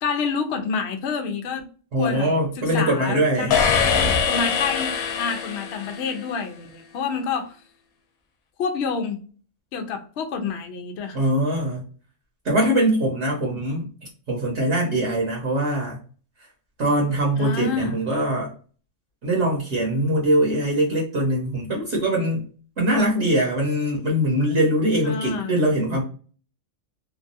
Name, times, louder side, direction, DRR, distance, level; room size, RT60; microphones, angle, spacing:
voice 1, 0.0-1.7 2.0-2.3 2.6-3.7 4.3-7.6 8.6-9.2 9.7-11.2 17.4-18.0 25.0-25.5, left 5 dB, 60° left, 5 dB, 0.8 m, -28 dB
voice 2, 1.9-3.6 11.1-11.8 12.4-13.9 14.3-16.0 16.8-18.5 19.2-22.4 22.8-26.0, right 1 dB, 60° right, -2 dB, 1.1 m, -22 dB
sound 1, 3.5-6.3, left 6 dB, 85° left, 1.1 m, -23 dB
3.0 x 2.3 x 2.6 m, 0.40 s
omnidirectional pair, 1.4 m